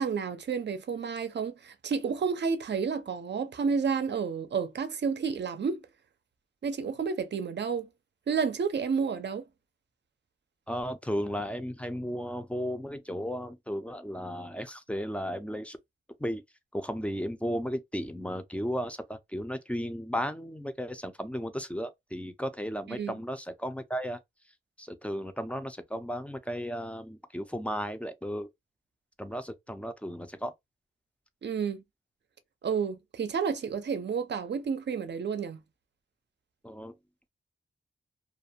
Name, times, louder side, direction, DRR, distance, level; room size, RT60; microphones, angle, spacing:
voice 1, 0.0-5.8 6.6-7.9 8.3-9.4 23.0-23.1 31.4-31.8 32.6-35.6, right 6 dB, 55° right, 0.5 m, -30 dB
voice 2, 10.7-15.8 16.2-16.4 16.7-24.2 24.8-28.5 29.2-30.5 36.6-36.9, equal, 5° left, 0.4 m, -34 dB
2.4 x 2.2 x 2.7 m
wide cardioid pair, 90°, 21 cm